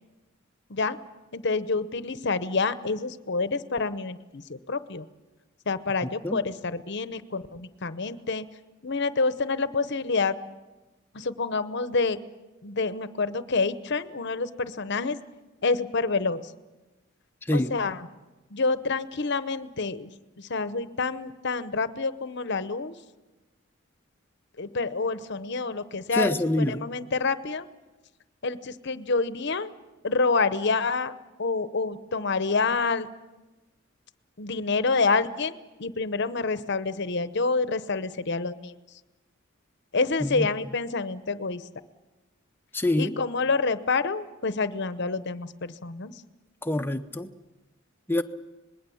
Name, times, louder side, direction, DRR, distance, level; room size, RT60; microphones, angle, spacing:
voice 1, 1.3-5.1 5.7-8.5 8.8-10.4 11.1-12.2 12.6-15.2 15.6-16.5 17.5-18.1 18.5-20.1 20.4-23.0 24.6-27.7 28.4-29.7 30.0-31.1 31.4-33.1 34.4-38.7 39.9-41.6 43.0-46.1, left 4 dB, 55° left, 0.9 m, -27 dB
voice 2, 26.2-26.7 40.2-40.5 42.7-43.1 46.6-47.3 48.1-48.2, left 1 dB, 10° left, 0.7 m, -25 dB
26.0 x 20.5 x 7.1 m
head